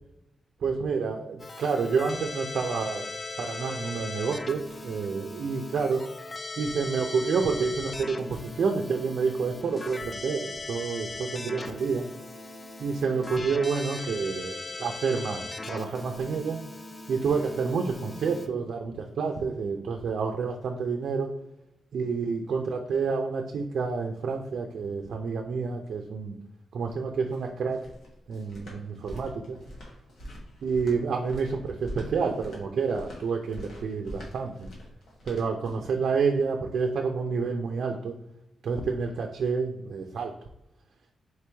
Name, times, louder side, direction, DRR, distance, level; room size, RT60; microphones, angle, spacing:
voice 1, 0.6-3.1 3.4-6.0 6.6-12.0 12.8-16.6 17.1-21.3 21.9-26.4 26.7-27.8 28.3-29.6 30.6-34.7 35.2-38.2 38.6-40.3, right 5 dB, 70° right, 3 dB, 0.4 m, -29 dB
Keyboard (musical), 1.4-18.5, left 3 dB, 25° left, 0.4 m, -39 dB
sound 1, 27.1-36.0, equal, 70° left, 1.4 m, -44 dB
4.5 x 3.0 x 3.3 m, 0.84 s
wide cardioid pair, 130°, 0 cm